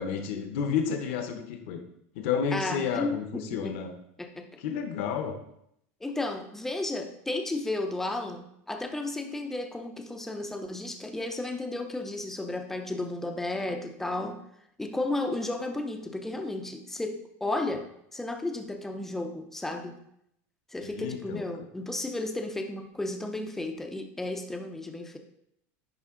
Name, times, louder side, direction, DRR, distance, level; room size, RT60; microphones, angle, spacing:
voice 1, 0.0-1.8 2.1-3.9 4.6-5.4 20.8-21.4, left 7 dB, 60° left, 5 dB, 0.9 m, -31 dB
voice 2, 2.5-3.8 4.2-4.5 6.0-14.4 14.8-20.0 20.7-25.2, left 2 dB, 5° left, 5 dB, 0.5 m, -33 dB
10.5 x 3.5 x 3.7 m, 0.75 s
supercardioid pair, 165°, 7 cm